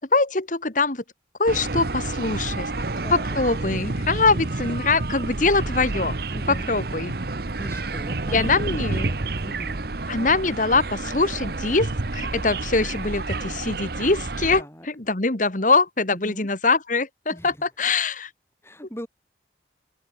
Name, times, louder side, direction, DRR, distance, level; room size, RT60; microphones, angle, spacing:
voice 1, 0.1-1.0 1.4-2.7 3.1-6.2 6.7-7.2 8.3-9.1 10.1-18.3, left 3 dB, 45° left, 1.7 m, -23 dB
sound 1, 1.5-14.6, right 2 dB, 55° right, 1.1 m, -29 dB
voice 2, 2.3-2.7 3.0-3.4 6.3-6.7 7.6-9.0 9.4-9.9 14.5-14.9 16.1-16.5 17.3-17.6 18.6-19.1, equal, 15° left, 6.9 m, -40 dB
head